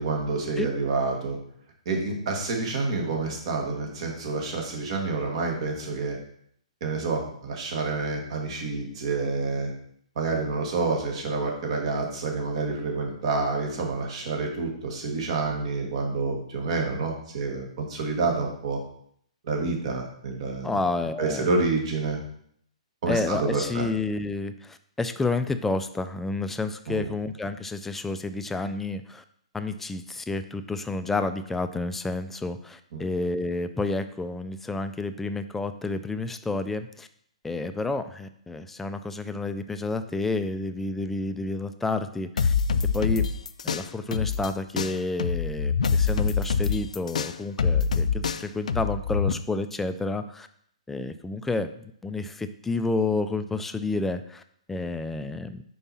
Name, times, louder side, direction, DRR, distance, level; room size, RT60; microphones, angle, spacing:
voice 1, 0.0-1.4 1.8-6.2 6.8-9.7 10.1-18.8 19.4-20.8 21.2-22.2 23.0-23.9 26.9-27.1 32.9-33.1, right 3 dB, 55° right, 1 dB, 1.7 m, -28 dB
voice 2, 20.6-21.5 23.1-29.2 29.5-37.1 37.4-42.5 42.9-43.3 43.6-50.5 50.9-54.4 54.7-55.6, left 3 dB, 5° left, 9 dB, 0.3 m, -30 dB
sound 1, 42.4-44.5 44.8-49.3, left 5 dB, 80° left, 0.4 m, -25 dB
5.3 x 4.6 x 4.2 m, 0.67 s
hypercardioid pair, 140°, 4 cm